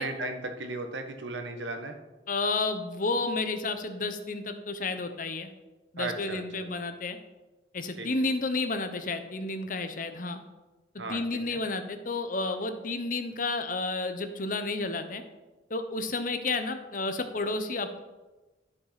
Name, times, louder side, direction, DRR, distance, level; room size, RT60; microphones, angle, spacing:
voice 1, 0.0-1.9 6.0-6.7 8.0-8.2 11.0-11.2 11.5-11.6, right 2 dB, 85° right, 6 dB, 1.3 m, -36 dB
voice 2, 2.3-5.5 5.9-7.2 7.7-10.4 11.1-15.2 15.7-18.0, left 3 dB, 45° left, 8 dB, 0.9 m, -31 dB
11.5 x 6.3 x 5.8 m, 1.2 s
head